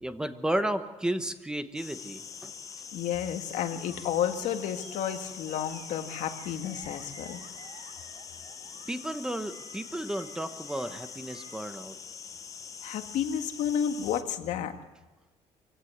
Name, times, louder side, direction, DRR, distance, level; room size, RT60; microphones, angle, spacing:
voice 1, 0.0-2.5 8.9-11.9, right 1 dB, 5° right, 9 dB, 1.0 m, -33 dB
sound 1, 1.7-14.2, left 6 dB, 25° left, 0.7 m, -44 dB
voice 2, 2.9-7.4 12.8-14.7, left 9 dB, 70° left, 6 dB, 1.9 m, -31 dB
Animal, 3.8-11.7, right 5 dB, 50° right, 3.1 m, -53 dB
24.0 x 16.5 x 8.1 m, 1.2 s
cardioid pair, 170°, 13 cm